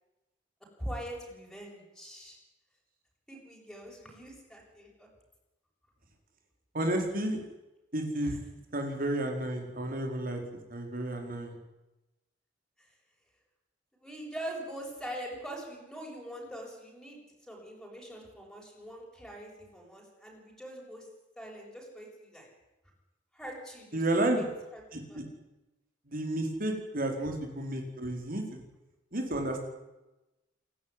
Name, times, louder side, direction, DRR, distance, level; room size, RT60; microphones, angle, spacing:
voice 1, 0.8-2.4 3.3-5.1 8.2-8.4 12.8-12.9 14.0-21.1 21.4-22.5 23.3-24.5 24.7-25.2, right 1 dB, ahead, -1 dB, 7.5 m, -43 dB
voice 2, 6.7-7.4 7.9-8.4 8.7-10.4 10.7-11.5 23.9-24.4 24.9-25.2 26.1-28.6 29.1-29.7, right 1 dB, 50° right, 3 dB, 4.7 m, -31 dB
27.0 x 12.0 x 9.8 m, 1.0 s
head